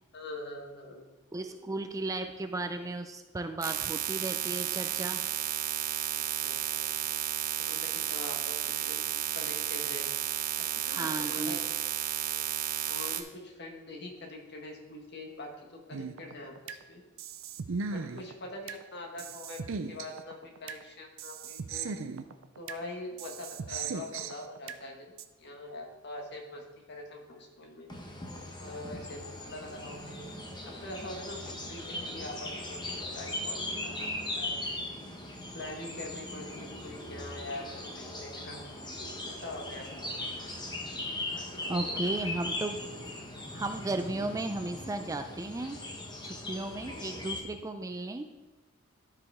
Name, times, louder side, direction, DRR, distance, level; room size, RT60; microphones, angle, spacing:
voice 1, 0.1-1.1 6.4-7.1 7.6-9.0 9.3-10.1 10.6-11.6 11.9-12.5 12.9-17.0 17.9-21.9 22.6-27.9 28.1-28.2 28.6-30.3 30.6-34.6 35.5-38.6 39.3-40.2 41.3-42.3, left 2 dB, 55° left, 1 dB, 1.5 m, -44 dB
voice 2, 1.3-5.2 10.9-11.6 41.7-42.8 43.5-45.8 46.2-48.3, right 2 dB, 15° right, 7 dB, 0.4 m, -35 dB
sound 1, 3.6-13.2, right 9 dB, 45° right, 0.8 m, -32 dB
sound 2, 15.9-16.8 17.2-18.8 19.2-20.8 21.2-22.8 23.2-24.8 25.2-25.3, right 5 dB, 70° right, 0.5 m, -38 dB
sound 3, 27.9-47.4, left 1 dB, 20° left, 0.9 m, -39 dB
12.5 x 5.0 x 3.6 m, 1.1 s
head